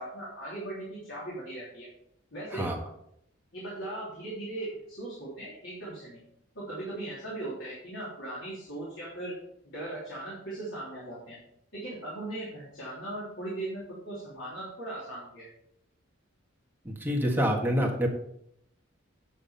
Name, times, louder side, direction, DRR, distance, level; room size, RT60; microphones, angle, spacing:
voice 1, 0.0-1.9 2.3-2.7 3.5-6.2 6.5-9.3 9.6-11.4 11.7-15.5, right 2 dB, 75° left, -8 dB, 3.3 m, -38 dB
voice 2, 16.8-18.1, equal, 10° right, 0 dB, 1.6 m, -27 dB
9.2 x 6.2 x 5.6 m, 0.74 s
head